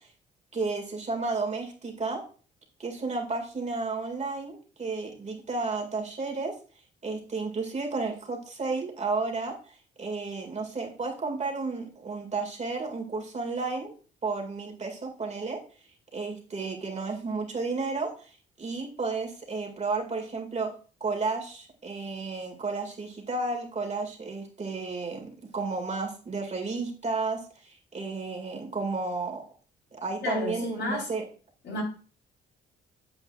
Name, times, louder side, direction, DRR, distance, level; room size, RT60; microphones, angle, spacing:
voice 1, 0.5-2.2 2.8-6.6 7.0-13.9 14.2-15.6 16.1-18.1 18.6-20.7 21.0-29.5 29.9-31.2, right 3 dB, 35° right, 2.1 m, -32 dB
voice 2, 30.2-31.1 31.6-31.8, left 2 dB, 65° left, 4.0 m, -32 dB
8.4 x 7.7 x 2.4 m
cardioid pair, 90°, 20 cm